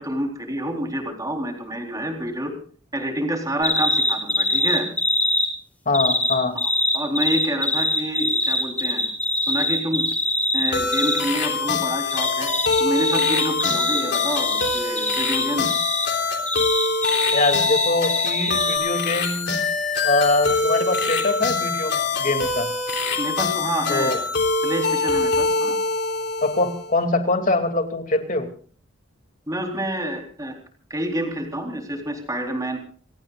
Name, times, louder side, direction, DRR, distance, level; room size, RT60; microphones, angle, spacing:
voice 1, 0.0-2.5 2.9-4.9 6.6-9.1 9.5-10.1 10.5-12.5 12.8-15.8 23.2-24.2 24.6-25.8 29.5-30.5 30.9-32.8, right 1 dB, 20° right, 2 dB, 3.9 m, -28 dB
sound 1, 3.6-5.5 5.9-11.2 12.1-16.1 16.5-18.8, left 1 dB, 10° left, 2.8 m, -23 dB
voice 2, 5.9-6.6 17.3-19.6 20.0-22.7 23.9-24.2 26.4-28.5, left 2 dB, 45° left, 5 dB, 2.7 m, -23 dB
sound 2, 10.7-26.9, left 4 dB, 60° left, 3.4 m, -24 dB
28.0 x 18.5 x 2.5 m, 0.42 s
head